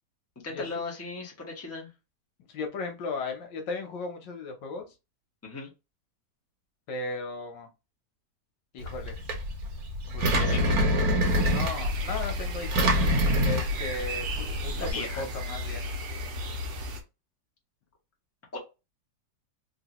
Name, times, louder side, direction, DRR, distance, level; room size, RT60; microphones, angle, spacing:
voice 1, 0.4-1.9 5.4-5.7 10.3-10.9 14.7-15.2 18.5-18.6, left 3 dB, 10° left, -1 dB, 0.7 m, -37 dB
voice 2, 2.5-4.9 6.9-7.7 8.7-9.2 10.1-10.6 11.3-12.9 13.4-15.9, left 3 dB, 85° left, 4 dB, 1.6 m, -36 dB
Engine, 8.8-14.9, equal, 65° right, 1.3 m, -26 dB
sound 1, 11.2-17.0, left 1 dB, 85° right, 1.5 m, -34 dB
3.8 x 2.3 x 2.9 m, 0.26 s
omnidirectional pair, 1.9 m